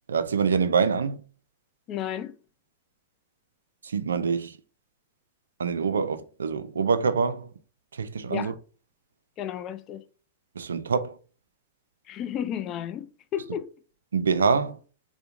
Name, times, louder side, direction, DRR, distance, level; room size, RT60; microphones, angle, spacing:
voice 1, 0.1-1.2 3.8-4.5 5.6-7.5 8.0-8.5 10.6-11.1 14.1-14.8, right 5 dB, 75° right, 0.3 m, -25 dB
voice 2, 1.9-2.3 8.3-8.6 9.4-10.0 12.1-13.7, left 10 dB, 35° left, 0.3 m, -33 dB
4.3 x 2.1 x 2.4 m
figure-of-eight pair, 95°, 0 cm